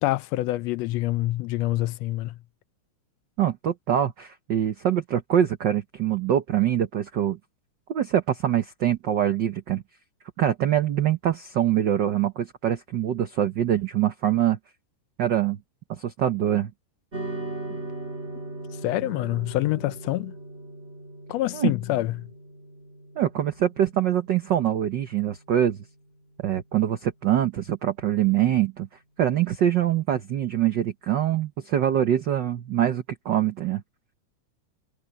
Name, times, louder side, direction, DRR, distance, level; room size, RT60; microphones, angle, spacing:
voice 1, 0.0-2.4 17.7-17.8 18.8-20.3 21.3-22.3, left 16 dB, 80° left, 1.6 m, -26 dB
voice 2, 3.4-7.4 7.9-9.8 10.4-14.6 15.2-15.6 16.0-16.7 21.5-21.7 23.2-25.8 26.4-28.9 29.2-33.8, right 10 dB, 85° right, 0.9 m, -24 dB
sound 1, 17.1-25.6, right 2 dB, 20° right, 4.6 m, -39 dB
omnidirectional pair, 3.3 m